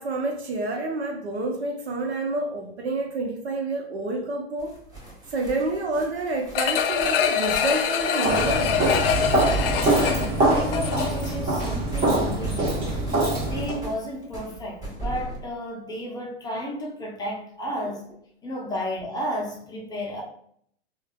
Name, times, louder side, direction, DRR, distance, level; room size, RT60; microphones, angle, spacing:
voice 1, 0.0-4.7 5.3-8.8, right 2 dB, 75° right, 2 dB, 0.9 m, -28 dB
sound 1, 4.6-11.0 11.2-15.4, right 3 dB, 10° right, 1.3 m, -36 dB
sound 2, 6.5-11.3 11.7-11.8, left 8 dB, 60° left, 0.5 m, -25 dB
Walk footsteps, 8.2-13.8, right 2 dB, 25° right, 1.0 m, -24 dB
voice 2, 9.8-13.0 13.4-18.1 18.4-20.2, left 1 dB, 10° left, -2 dB, 0.6 m, -32 dB
3.3 x 2.4 x 2.2 m, 0.65 s
hypercardioid pair, 115°, 32 cm